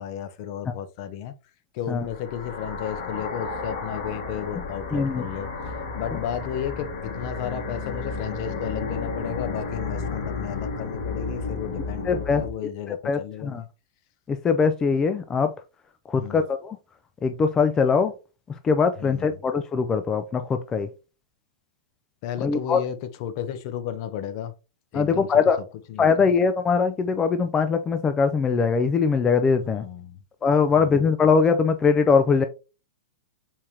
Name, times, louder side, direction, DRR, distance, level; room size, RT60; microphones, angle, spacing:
voice 1, 0.0-1.3 1.7-13.7 16.1-16.5 19.0-19.4 22.2-24.5 24.9-25.4 25.9-26.3 29.6-30.2 30.7-31.0, left 10 dB, 50° left, 0.7 m, -33 dB
sound 1, 1.9-12.5, left 4 dB, 65° left, 2.0 m, -32 dB
voice 2, 4.9-5.2 12.1-12.4 13.0-13.6 14.3-15.5 16.1-16.8 17.2-18.1 18.6-20.9 22.4-22.8 24.9-25.6 26.0-29.8 30.4-32.4, left 5 dB, 20° left, 0.4 m, -21 dB
4.5 x 3.5 x 2.8 m
hypercardioid pair, 125°, 3 cm